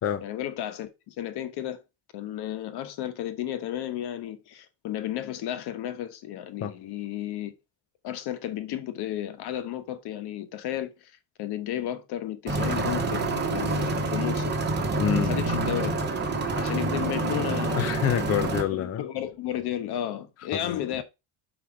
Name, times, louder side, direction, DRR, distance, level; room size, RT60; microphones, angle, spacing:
voice 1, 0.2-1.8 2.1-7.5 8.0-11.1 11.4-14.5 15.2-16.0 16.6-18.0 18.7-21.0, left 11 dB, 60° left, 1.1 m, -33 dB
sound 1, 12.5-18.6, right 2 dB, 25° right, 1.1 m, -27 dB
voice 2, 15.0-15.3 17.8-19.0 20.5-20.8, left 9 dB, 35° left, 0.5 m, -27 dB
6.1 x 4.9 x 4.8 m
cardioid pair, 160°, 44 cm